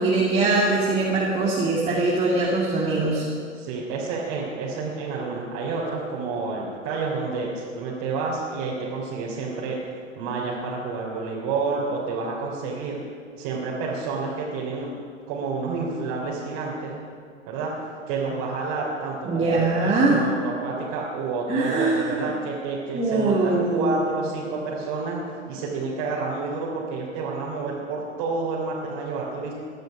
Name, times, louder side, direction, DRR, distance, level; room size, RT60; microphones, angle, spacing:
voice 1, 0.0-3.3 19.3-20.2 21.5-22.3 22.9-24.0, right 3 dB, 15° right, -4 dB, 2.3 m, -22 dB
voice 2, 3.5-13.0 13.4-14.9 15.3-17.0 17.5-17.7 18.1-25.2 25.4-29.5, right 4 dB, 45° right, -5 dB, 3.4 m, -29 dB
20.0 x 12.0 x 5.2 m, 2.3 s
hypercardioid pair, 110°, 38 cm